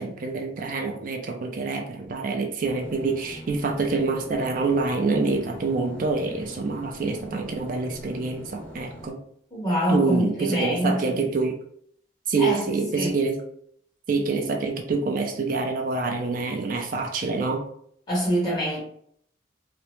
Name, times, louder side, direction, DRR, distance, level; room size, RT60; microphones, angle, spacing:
voice 1, 0.0-9.2 9.9-11.6 12.3-13.4 14.1-17.6, right 3 dB, 45° right, 3 dB, 0.4 m, -26 dB
sound 1, 2.6-9.1, equal, 5° left, 0.7 m, -43 dB
voice 2, 9.5-11.2 12.4-12.7 12.9-13.2 18.1-18.8, equal, 20° left, -8 dB, 1.3 m, -25 dB
2.8 x 2.0 x 3.0 m, 0.66 s
head